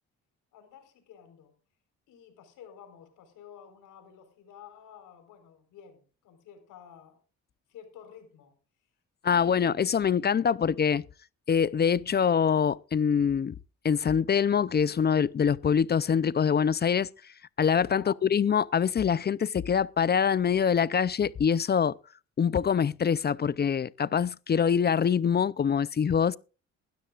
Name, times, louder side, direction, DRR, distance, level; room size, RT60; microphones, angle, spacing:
voice 1, 0.5-1.5 2.1-7.2 7.7-8.6 9.2-9.9 17.9-18.2, left 8 dB, 85° left, 4.5 m, -51 dB
voice 2, 9.2-11.0 11.5-13.6 13.8-17.1 17.6-22.0 22.4-26.4, left 7 dB, 35° left, 0.6 m, -24 dB
21.0 x 12.5 x 2.5 m
cardioid pair, 90°, 30 cm